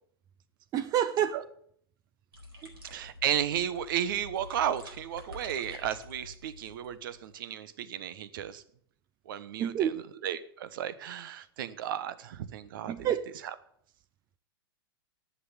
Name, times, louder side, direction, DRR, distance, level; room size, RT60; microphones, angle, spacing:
voice 1, 0.7-1.4 2.6-2.7 9.6-10.0 12.9-13.3, right 10 dB, 30° right, 0.7 m, -28 dB
sound 1, 2.3-7.3, left 2 dB, 75° right, 4.4 m, -48 dB
voice 2, 2.9-8.6 9.3-9.9 10.2-13.1, right 10 dB, 55° right, 1.2 m, -34 dB
11.5 x 8.6 x 9.7 m
figure-of-eight pair, 100°, 13 cm